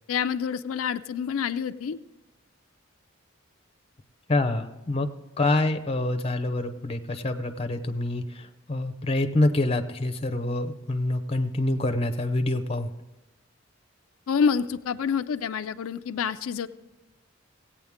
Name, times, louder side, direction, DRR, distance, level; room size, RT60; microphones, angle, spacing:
voice 1, 0.1-2.0 14.3-16.7, left 6 dB, 85° left, 9 dB, 0.4 m, -27 dB
voice 2, 4.3-5.1 5.4-12.9, left 2 dB, 30° left, 8 dB, 0.7 m, -26 dB
16.5 x 8.8 x 3.6 m, 1.0 s
head